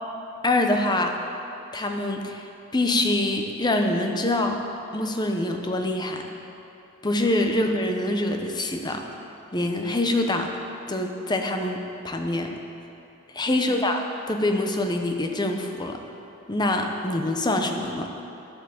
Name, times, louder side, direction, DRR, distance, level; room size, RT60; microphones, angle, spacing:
voice 1, 0.4-1.1 1.7-2.4 2.7-4.6 4.9-6.2 7.0-9.0 9.5-10.5 10.9-12.5 13.3-16.0 16.5-18.1, left 1 dB, 20° left, 4 dB, 0.9 m, -25 dB
10.0 x 8.5 x 7.2 m, 2.9 s
head